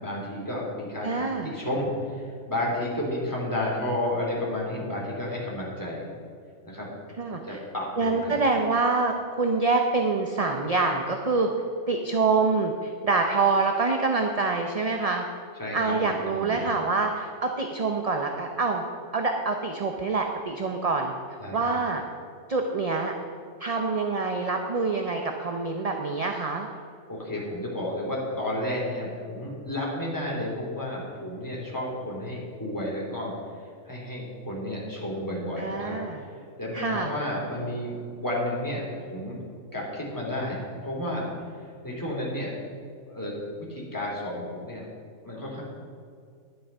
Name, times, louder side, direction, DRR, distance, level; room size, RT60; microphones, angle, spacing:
voice 1, 0.0-6.1 6.6-6.9 7.5-8.4 15.6-16.6 21.4-21.6 27.1-33.3 33.8-36.0 36.6-38.8 39.1-39.4 39.7-41.3 41.8-42.5 43.1-44.9 45.2-45.6, left 1 dB, 15° left, -4 dB, 2.9 m, -31 dB
voice 2, 1.0-1.5 7.2-7.6 8.0-11.5 11.9-15.2 15.7-18.8 19.1-22.0 22.5-23.1 23.6-26.7 35.6-36.2 36.7-37.1, right 3 dB, 35° right, 3 dB, 0.7 m, -26 dB
10.5 x 10.5 x 5.5 m, 2.3 s
omnidirectional pair, 1.3 m